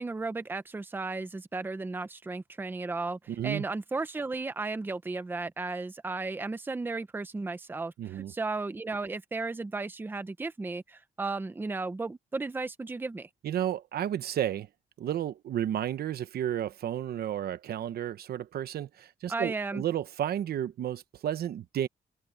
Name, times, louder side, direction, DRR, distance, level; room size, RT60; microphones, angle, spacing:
voice 1, 0.0-13.3 19.3-19.8, right 3 dB, 15° right, 0.7 m, -34 dB
voice 2, 3.3-3.6 8.0-8.3 13.4-14.7 15.0-21.9, right 10 dB, 75° right, 1.0 m, -32 dB
open air
wide cardioid pair, 175°, 16 cm